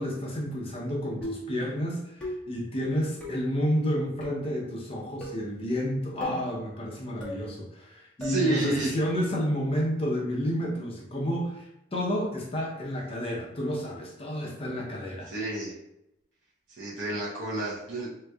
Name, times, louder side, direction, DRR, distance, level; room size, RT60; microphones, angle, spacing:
voice 1, 0.0-15.3, equal, 30° left, -2 dB, 0.6 m, -30 dB
sound 1, 1.2-1.6 2.2-2.6 3.2-3.5 4.2-4.5 5.2-5.5 6.2-6.5 7.2-7.5 8.2-8.5, equal, 5° left, 1.0 m, -38 dB
voice 2, 8.2-9.0 15.3-15.7 16.7-18.1, right 2 dB, 70° right, -7 dB, 0.8 m, -30 dB
3.5 x 3.0 x 2.3 m, 0.84 s
head